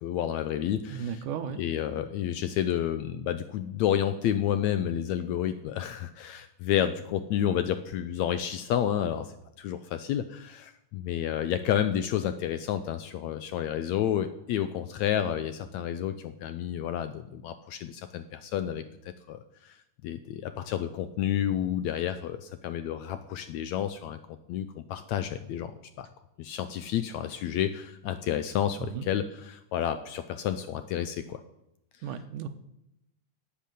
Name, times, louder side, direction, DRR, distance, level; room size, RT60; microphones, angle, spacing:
voice 1, 0.0-1.2 1.6-18.8 19.3-19.7 20.0-24.2 24.5-25.7 26.0-26.1 26.4-31.4, left 10 dB, 80° left, 11 dB, 1.7 m, -30 dB
voice 2, 0.9-1.6 28.8-29.1 32.0-32.5, right 7 dB, 75° right, 10 dB, 2.4 m, -35 dB
11.5 x 8.5 x 9.2 m, 0.85 s
omnidirectional pair, 3.8 m